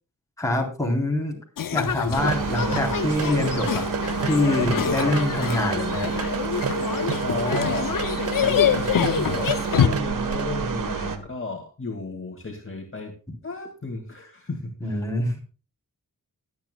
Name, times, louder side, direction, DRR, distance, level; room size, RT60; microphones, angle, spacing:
voice 1, 0.4-1.4 1.7-3.9 4.2-6.1 14.8-15.4, left 2 dB, 10° left, -1 dB, 3.8 m, -25 dB
sound 1, 1.6-9.9, left 9 dB, 85° left, 0.7 m, -26 dB
sound 2, 2.1-10.4, right 6 dB, 45° right, 0.7 m, -32 dB
sound 3, 2.1-11.2, right 5 dB, 75° right, 1.4 m, -29 dB
voice 2, 7.2-7.9 8.4-13.2 13.4-15.0, left 3 dB, 40° left, 2 dB, 2.3 m, -33 dB
22.5 x 8.6 x 2.3 m, 0.34 s
wide cardioid pair, 135°, 32 cm